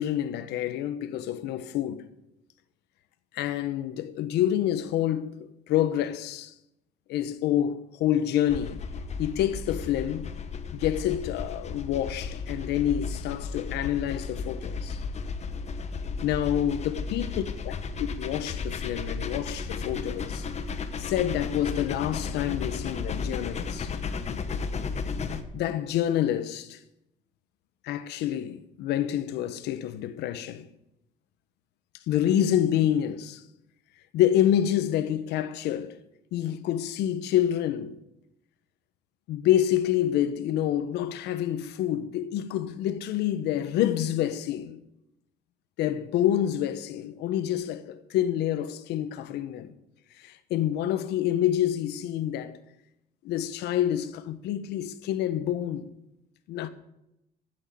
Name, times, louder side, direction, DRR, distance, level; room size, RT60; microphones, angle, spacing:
voice 1, 0.0-2.0 3.3-6.5 7.1-8.8 9.2-10.3 10.7-15.0 16.2-17.7 18.2-20.5 21.0-23.9 25.5-26.8 27.8-30.6 32.1-33.4 34.1-36.0 36.3-38.0 39.3-44.8 45.8-49.7 50.2-52.6 53.2-55.9 56.5-56.7, left 11 dB, 85° left, 1.1 m, -27 dB
sound 1, 8.5-25.4, left 5 dB, 40° left, 1.2 m, -34 dB
15.0 x 6.5 x 7.8 m
cardioid pair, 110°, 17 cm